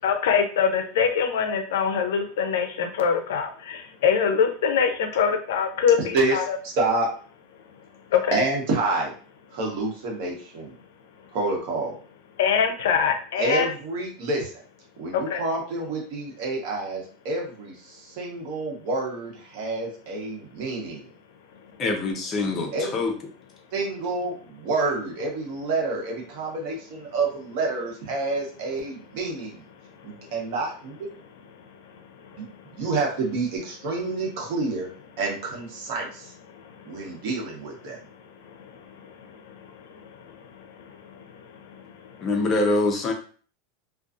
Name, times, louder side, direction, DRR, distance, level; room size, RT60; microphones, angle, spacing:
voice 1, 0.0-6.4 8.1-8.4 12.4-13.7 15.1-15.4, left 7 dB, 80° left, 7 dB, 0.5 m, -23 dB
voice 2, 6.6-7.1 8.3-9.1 9.5-10.7 11.3-12.0 13.3-14.6 15.0-21.1 22.7-22.9 23.7-29.6 30.0-30.9 32.3-34.9 35.2-36.3 36.8-38.0, right 3 dB, 60° right, 0 dB, 1.0 m, -28 dB
voice 3, 21.8-23.1 42.2-43.1, left 2 dB, 30° left, 2 dB, 0.6 m, -24 dB
2.5 x 2.3 x 2.4 m, 0.42 s
supercardioid pair, 135°, 0 cm